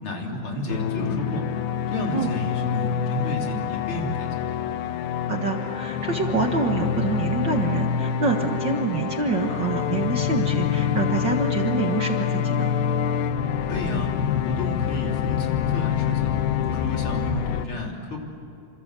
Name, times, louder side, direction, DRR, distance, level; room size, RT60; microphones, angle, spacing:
voice 1, 0.0-1.4 1.9-4.6 13.7-14.1 14.4-16.3 16.5-18.2, left 1 dB, 35° left, 0 dB, 3.9 m, -31 dB
sound 1, 0.7-17.7, left 8 dB, 90° left, 2.8 m, -26 dB
voice 2, 5.3-12.7, right 4 dB, 60° right, 2 dB, 1.1 m, -26 dB
29.0 x 26.5 x 7.6 m, 2.7 s
omnidirectional pair, 4.3 m